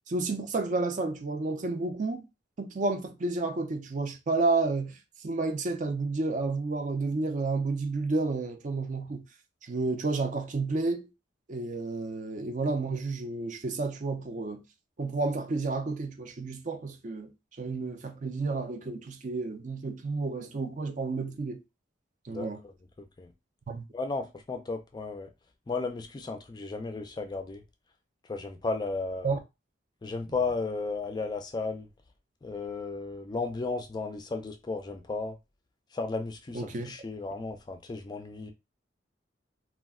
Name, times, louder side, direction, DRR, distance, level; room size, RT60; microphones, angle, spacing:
voice 1, 0.1-2.3 2.6-9.2 9.6-11.1 11.5-14.6 15.0-17.3 17.6-21.6 22.3-22.6 23.7-23.8 29.2-29.4 36.5-36.9, right 3 dB, 45° right, 0.5 m, -31 dB
voice 2, 22.3-22.7 23.0-23.3 23.9-25.3 25.7-27.6 28.3-29.3 30.0-31.9 32.4-35.4 35.9-38.5, left 3 dB, 25° left, 0.3 m, -34 dB
2.3 x 2.1 x 3.5 m
head